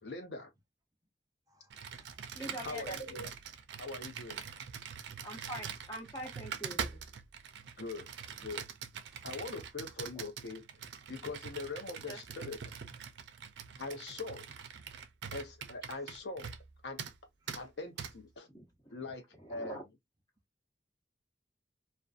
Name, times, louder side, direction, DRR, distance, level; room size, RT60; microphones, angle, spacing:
voice 1, 0.0-0.5 2.6-3.3 3.8-4.4 7.8-8.1 8.3-8.7 9.2-10.6 11.1-12.7 13.8-14.5 15.3-16.5 16.8-17.0 17.5-18.5 18.9-19.8, left 3 dB, 80° left, 0.7 m, -42 dB
voice 2, 1.5-2.6 4.4-4.6 8.0-8.6 9.1-9.3 9.6-10.1 13.7-13.9 14.2-14.3 15.9-16.2 17.4-17.7 19.3-19.7, equal, 20° right, 0.5 m, -66 dB
Computer keyboard, 1.7-16.7 17.0-17.2 17.5-17.6 18.0-18.1, right 7 dB, 90° right, 0.4 m, -44 dB
voice 3, 2.3-3.1 5.2-7.0 10.1-10.2 12.0-12.5 18.5-19.0 19.4-19.8, right 1 dB, 25° left, 1.0 m, -45 dB
2.5 x 2.2 x 2.3 m
head